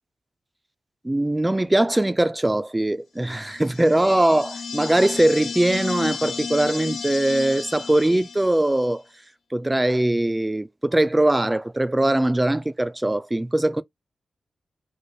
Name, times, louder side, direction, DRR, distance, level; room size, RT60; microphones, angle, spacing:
voice 1, 1.0-9.0 9.5-13.8, right 1 dB, 20° right, 0.5 m, -21 dB
sound 1, 3.5-8.9, left 5 dB, 70° left, 0.3 m, -33 dB
3.3 x 2.0 x 4.0 m
cardioid pair, 45°, 0 cm